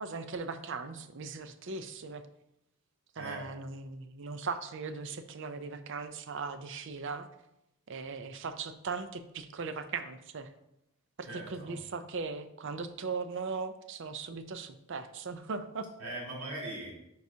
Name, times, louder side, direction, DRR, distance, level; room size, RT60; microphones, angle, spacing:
voice 1, 0.0-2.2 3.2-7.3 7.9-10.5 11.2-15.9, right 4 dB, 55° right, 10 dB, 0.5 m, -38 dB
voice 2, 11.3-11.8 16.0-16.9, right 1 dB, 75° right, -3 dB, 2.3 m, -40 dB
9.2 x 4.8 x 2.8 m, 0.85 s
head